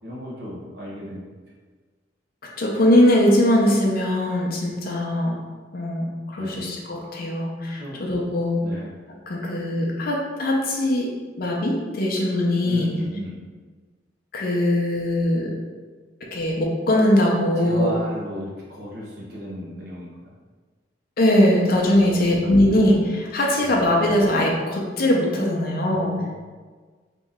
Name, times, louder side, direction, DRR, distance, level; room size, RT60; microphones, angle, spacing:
voice 1, 0.0-1.3 6.4-6.7 7.7-8.0 8.6-8.9 12.6-13.4 17.6-20.3 22.0-22.7 23.6-23.9 25.8-26.4, equal, 60° right, -5 dB, 1.2 m, -35 dB
voice 2, 2.6-5.4 5.7-8.6 9.3-11.1 11.4-12.9 14.3-15.5 16.3-17.9 21.2-26.1, left 1 dB, 55° left, -2 dB, 0.6 m, -21 dB
3.1 x 2.9 x 3.5 m, 1.4 s
head